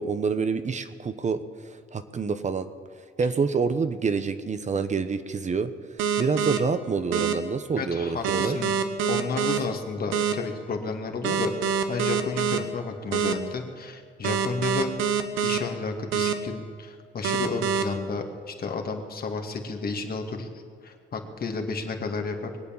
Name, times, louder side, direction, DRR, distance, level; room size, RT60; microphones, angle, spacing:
voice 1, 0.0-2.7 3.2-5.7 6.2-8.6, right 5 dB, 35° right, 10 dB, 0.9 m, -27 dB
sound 1, 6.0-6.6 7.1-7.3 8.2-9.6 10.1-10.3 11.2-12.6 13.1-13.3 14.2-15.6 16.1-16.3 17.2-17.8, right 7 dB, 90° right, 1.1 m, -25 dB
voice 2, 7.8-8.7 9.1-14.9 15.4-20.5 20.8-22.5, left 4 dB, 50° left, 4 dB, 2.2 m, -32 dB
22.0 x 8.4 x 7.2 m, 2.3 s
cardioid pair, 90°, 20 cm